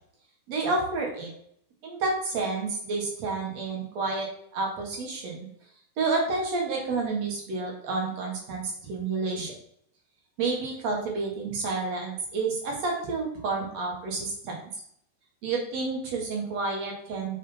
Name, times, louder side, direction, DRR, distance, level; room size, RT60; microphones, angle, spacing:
voice 1, 0.5-1.3 1.8-5.5 6.0-9.5 10.4-14.6 15.4-17.4, right 3 dB, 55° right, 0 dB, 3.1 m, -30 dB
7.5 x 6.4 x 4.4 m, 0.66 s
omnidirectional pair, 4.0 m